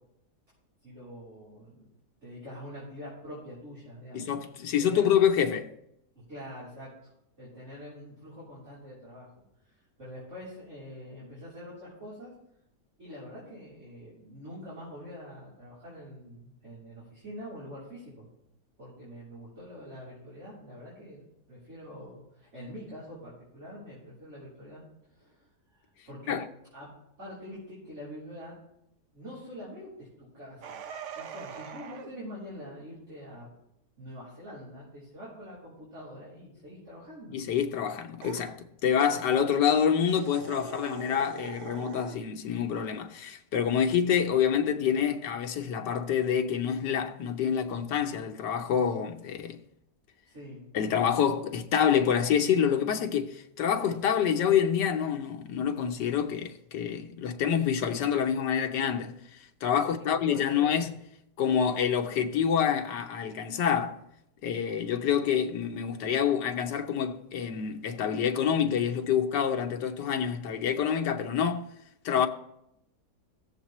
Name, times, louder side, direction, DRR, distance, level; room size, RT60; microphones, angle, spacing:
voice 1, 0.8-1.9 2.2-4.3 4.8-5.1 6.1-7.1 7.4-9.3 9.6-12.3 13.0-18.3 18.8-26.4 26.7-26.9 27.2-28.5 29.1-30.8 31.2-33.5 34.0-37.4 50.2-50.6 59.8-60.9, equal, 45° right, 3.8 m, -45 dB
voice 2, 4.1-5.7 26.3-26.4 37.3-49.6 50.7-60.9 61.4-64.0 64.4-71.7 72.0-72.3, left 8 dB, 90° left, 1.5 m, -27 dB
sound 1, 30.6-32.1 38.2-38.5 40.1-42.2, right 6 dB, 60° right, 0.8 m, -42 dB
17.0 x 7.4 x 3.0 m
omnidirectional pair, 1.8 m